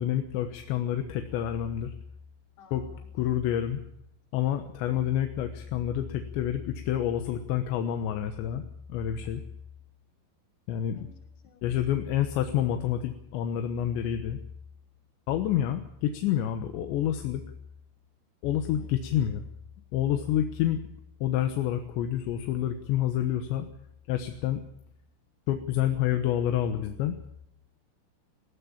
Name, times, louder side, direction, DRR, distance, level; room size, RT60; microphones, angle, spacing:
voice 1, 0.0-1.9 2.7-2.8 3.1-3.8 4.3-8.6 8.9-9.4 10.7-11.1 11.6-14.4 15.3-17.4 18.4-19.4 19.9-20.8 21.2-23.7 24.1-24.6 25.5-27.2, left 11 dB, 80° left, 7 dB, 3.4 m, -28 dB
voice 2, 2.6-3.1 10.9-11.7 18.7-19.1, left 3 dB, 60° left, 5 dB, 4.8 m, -56 dB
19.0 x 16.5 x 8.7 m, 0.75 s
omnidirectional pair, 5.3 m